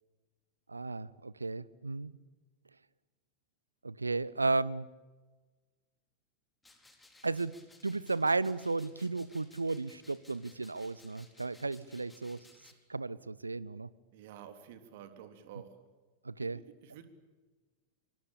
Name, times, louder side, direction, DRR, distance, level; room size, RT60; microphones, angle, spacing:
voice 1, 0.7-2.1 3.8-4.9 7.2-7.5 7.8-12.4 12.9-13.9 16.2-16.6, right 3 dB, 80° right, 21 dB, 0.9 m, -34 dB
sound 1, 6.6-12.7, left 2 dB, 10° left, 4.3 m, -61 dB
voice 2, 14.1-15.7 16.4-17.1, right 10 dB, 50° right, 8 dB, 3.3 m, -50 dB
25.5 x 24.5 x 8.9 m, 1.3 s
figure-of-eight pair, 90°, 0 cm